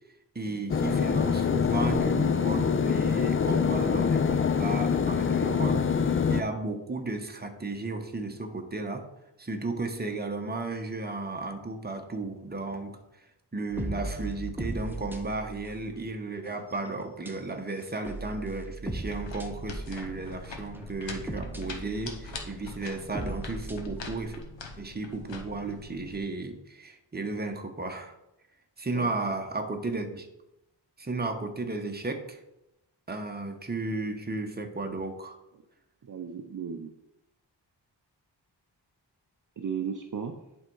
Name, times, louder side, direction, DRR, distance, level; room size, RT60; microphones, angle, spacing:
voice 1, 0.3-9.1 9.4-13.0 13.5-24.4 24.8-28.2 28.8-30.3 31.0-32.4 33.1-35.4, right 2 dB, 20° right, 4 dB, 1.0 m, -34 dB
sound 1, 0.7-6.4, left 6 dB, 30° left, 0.4 m, -25 dB
sound 2, 13.7-16.1 16.5-16.9 17.3-17.4 17.8-20.4 20.7-24.1, right 2 dB, 5° right, 0.9 m, -38 dB
sound 3, 18.8-26.2, left 3 dB, 85° left, 1.2 m, -43 dB
voice 2, 36.0-36.9 39.6-40.4, right 7 dB, 45° right, 5 dB, 0.6 m, -35 dB
10.5 x 3.7 x 4.6 m, 0.89 s
wide cardioid pair, 85°, 43 cm